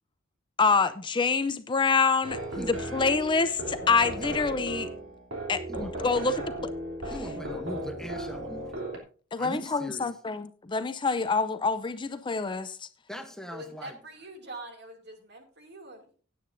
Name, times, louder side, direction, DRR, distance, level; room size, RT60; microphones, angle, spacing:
voice 1, 0.6-4.9 5.5-6.7 9.3-12.9, left 4 dB, 25° left, 0.5 m, -26 dB
sound 1, 2.2-9.0, right 1 dB, 70° right, 3.0 m, -36 dB
voice 2, 2.6-3.1 4.2-4.5 5.7-6.5 7.1-8.7 9.4-10.2 13.1-14.0, equal, 5° left, 0.9 m, -41 dB
voice 3, 13.5-16.1, right 1 dB, 55° right, 2.5 m, -44 dB
16.0 x 9.3 x 2.6 m
head